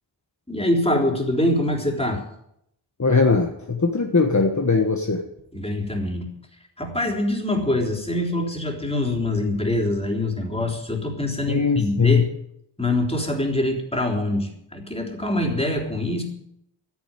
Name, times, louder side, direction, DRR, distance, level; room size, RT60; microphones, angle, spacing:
voice 1, 0.5-2.2 5.5-6.3 6.8-12.3 12.8-16.2, left 1 dB, 15° left, 1 dB, 3.8 m, -24 dB
voice 2, 3.0-5.2 11.5-12.2, left 4 dB, 40° left, 3 dB, 1.5 m, -20 dB
13.0 x 9.7 x 9.0 m, 0.77 s
wide cardioid pair, 70°, 45 cm